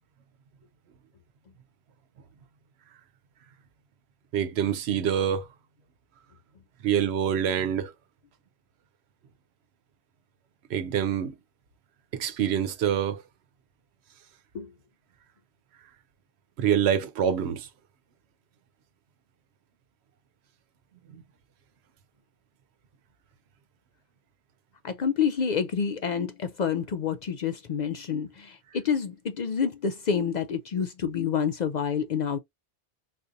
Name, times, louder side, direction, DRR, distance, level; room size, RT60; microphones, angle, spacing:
voice 1, 4.3-5.5 6.8-7.9 10.7-11.3 12.1-13.2 16.6-17.7 21.1-21.2, right 8 dB, 85° right, 0.9 m, -26 dB
voice 2, 24.8-32.4, left 7 dB, 55° left, 0.5 m, -28 dB
4.0 x 2.6 x 2.5 m
omnidirectional pair, 1.1 m